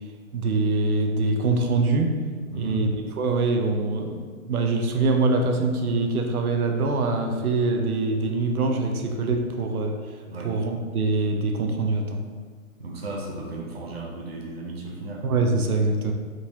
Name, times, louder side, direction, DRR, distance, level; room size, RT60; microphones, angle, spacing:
voice 1, 0.3-2.2 2.5-12.2 15.2-16.1, right 3 dB, 85° right, 4 dB, 0.7 m, -24 dB
voice 2, 2.5-2.8 10.3-10.5 12.8-15.3, right 1 dB, 45° right, -2 dB, 0.6 m, -34 dB
3.7 x 3.0 x 2.6 m, 1.5 s
hypercardioid pair, 175°, 43 cm